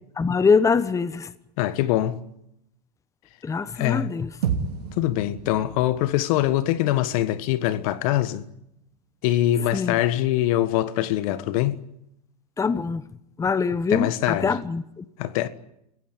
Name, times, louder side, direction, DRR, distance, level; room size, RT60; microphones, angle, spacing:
voice 1, 0.2-1.3 3.4-4.3 9.7-10.0 12.6-13.0 13.4-15.0, left 5 dB, 15° left, 1.0 m, -23 dB
voice 2, 1.6-2.2 3.7-4.1 5.0-8.4 9.2-11.8 13.9-14.6 15.2-15.5, left 14 dB, 60° left, 1.5 m, -23 dB
sound 1, 4.4-8.8, right 7 dB, 75° right, 2.8 m, -33 dB
28.5 x 16.0 x 9.7 m
hypercardioid pair, 95°, 20 cm